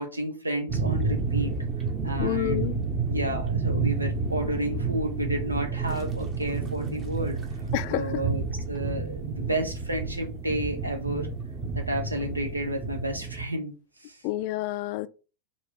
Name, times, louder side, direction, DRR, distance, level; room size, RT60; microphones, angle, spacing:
voice 1, 0.0-1.5 2.0-2.7 3.1-7.4 7.9-11.3 11.7-13.8 14.0-14.2, right 1 dB, 80° right, 0.9 m, -31 dB
sound 1, 0.7-13.4, right 4 dB, 25° right, 0.9 m, -30 dB
voice 2, 2.2-2.8 7.7-8.2 14.2-15.1, left 15 dB, 45° left, 0.3 m, -28 dB
4.2 x 2.4 x 4.0 m
figure-of-eight pair, 90°, 0 cm